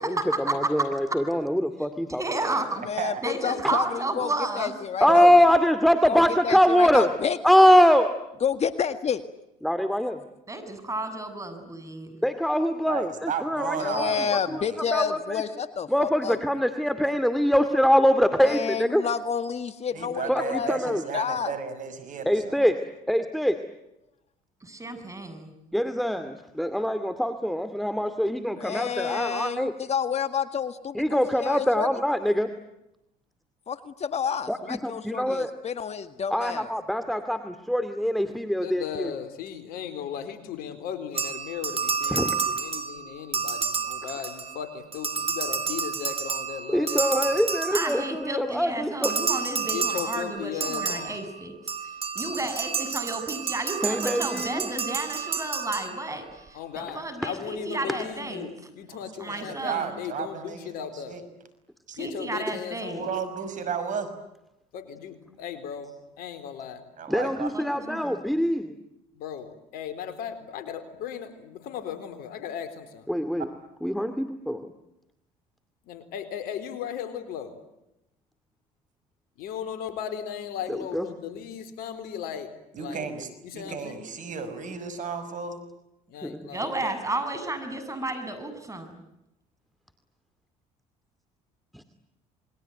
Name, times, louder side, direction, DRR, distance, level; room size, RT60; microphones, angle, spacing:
voice 1, 0.0-2.2 3.6-3.7 5.0-7.1 7.4-8.1 9.6-10.2 12.2-14.6 14.9-15.4 15.9-19.0 20.3-21.1 22.3-22.8 23.1-23.6 25.7-29.7 30.9-32.5 34.5-35.5 36.3-39.1 42.1-42.3 46.7-49.1 53.8-54.7 67.1-68.7 73.1-73.5 73.8-74.7 80.7-81.1 86.2-86.5 91.7-91.8, equal, ahead, 9 dB, 2.4 m, -23 dB
voice 2, 2.2-2.8 3.2-4.7 10.5-12.2 24.6-25.5 47.7-58.5 59.2-60.0 62.0-63.1 67.5-68.3 86.5-89.0, right 2 dB, 20° right, 9 dB, 7.8 m, -32 dB
voice 3, 2.8-4.3 4.6-5.3 6.1-7.4 8.4-9.2 13.8-16.4 18.4-21.5 28.6-31.9 33.7-36.7, left 7 dB, 45° left, 10 dB, 1.8 m, -29 dB
voice 4, 12.9-14.8 19.9-22.7 48.5-48.7 58.9-61.2 61.9-62.0 62.9-64.1 67.0-67.5 82.7-85.6, right 6 dB, 55° right, 11 dB, 5.9 m, -33 dB
voice 5, 38.6-47.4 49.7-51.2 56.5-61.2 62.0-63.1 64.7-66.9 69.1-73.1 75.8-77.5 79.4-82.5 82.8-83.1 83.4-84.0 86.1-86.7, left 8 dB, 70° left, 10 dB, 4.2 m, -37 dB
sound 1, 41.1-44.6 44.9-48.4 49.0-56.3, right 6 dB, 40° right, 3.5 m, -30 dB
28.0 x 22.5 x 9.3 m, 0.88 s
supercardioid pair, 70°, 16 cm